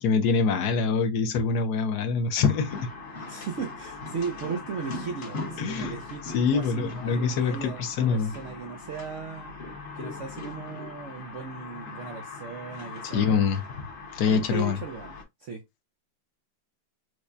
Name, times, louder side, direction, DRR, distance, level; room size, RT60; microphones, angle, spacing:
voice 1, 0.0-2.8 5.6-5.9 6.3-8.3 13.0-13.6 14.1-14.8, left 5 dB, 70° left, 1.1 m, -25 dB
sound 1, 2.4-15.2, left 3 dB, 45° left, 1.0 m, -40 dB
voice 2, 3.3-9.5 9.9-13.5 14.3-15.1 15.4-15.6, right 5 dB, 85° right, 0.6 m, -37 dB
4.7 x 2.2 x 2.5 m
omnidirectional pair, 2.1 m